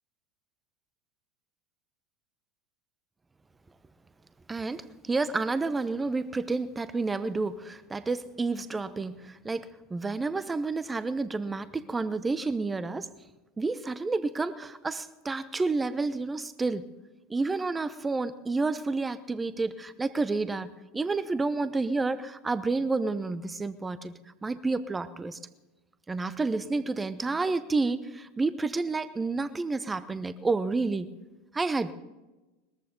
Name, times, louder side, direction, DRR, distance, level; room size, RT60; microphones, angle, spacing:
voice 1, 4.5-13.1 13.6-16.9 17.3-24.1 24.4-25.4 26.1-31.1 31.5-31.9, right 3 dB, 15° right, 16 dB, 0.8 m, -30 dB
21.0 x 14.0 x 3.9 m, 1.1 s
figure-of-eight pair, 80°, 0 cm